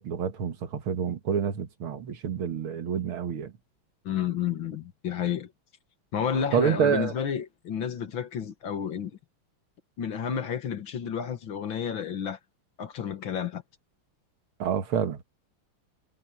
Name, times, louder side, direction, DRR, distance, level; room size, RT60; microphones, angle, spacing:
voice 1, 0.0-3.5 6.5-7.1 14.6-15.2, right 7 dB, 80° right, 2.4 m, -28 dB
voice 2, 4.0-5.5 6.1-9.1 10.0-12.4 12.8-13.6, left 8 dB, 65° left, 2.2 m, -31 dB
omnidirectional pair, 2.3 m